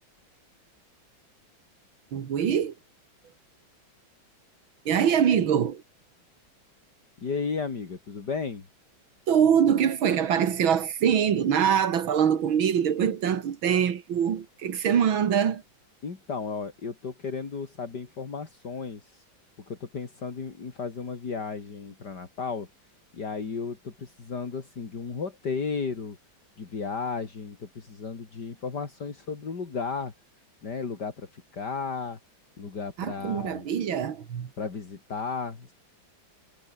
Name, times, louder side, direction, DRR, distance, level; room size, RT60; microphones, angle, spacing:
voice 1, 2.1-2.7 4.9-5.8 9.3-15.6 33.0-34.5, right 8 dB, 90° right, 2.5 m, -24 dB
voice 2, 7.2-8.6 16.0-19.2 19.7-22.7 23.1-26.2 26.6-30.1 30.6-32.2 32.6-33.7 34.6-35.7, left 5 dB, 55° left, 3.4 m, -34 dB
omnidirectional pair, 2.1 m